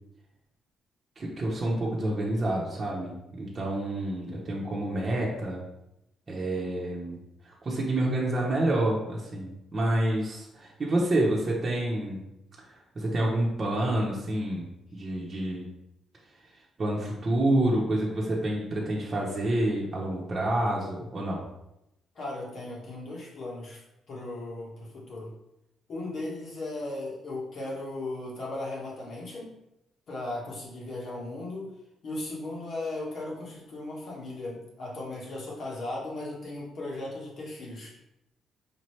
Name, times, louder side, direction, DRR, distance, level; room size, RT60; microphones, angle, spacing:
voice 1, 1.2-5.6 6.3-7.2 7.4-12.2 12.9-14.6 14.9-15.7 16.8-21.4, right 1 dB, 35° right, -4 dB, 0.9 m, -28 dB
voice 2, 22.1-25.3 25.9-29.5 30.1-31.7 32.0-37.9, left 2 dB, 60° left, -3 dB, 1.5 m, -37 dB
5.0 x 2.9 x 3.2 m, 0.87 s
cardioid pair, 90°, 0 cm